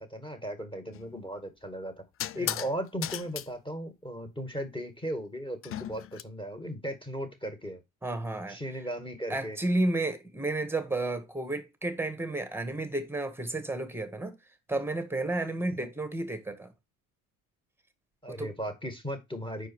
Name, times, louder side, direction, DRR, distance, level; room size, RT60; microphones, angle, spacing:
voice 1, 0.0-2.0 2.3-7.8 8.5-9.6 15.6-15.7 18.2-19.7, equal, 10° left, 1.9 m, -37 dB
sound 1, 0.9-1.1 2.2-2.7 3.0-3.5 5.6-6.2, left 12 dB, 35° left, 0.4 m, -35 dB
voice 2, 8.0-8.6 9.3-14.3 14.7-16.7 18.3-18.5, right 2 dB, 5° right, 1.3 m, -31 dB
5.4 x 4.6 x 4.5 m
hypercardioid pair, 70°, 45 cm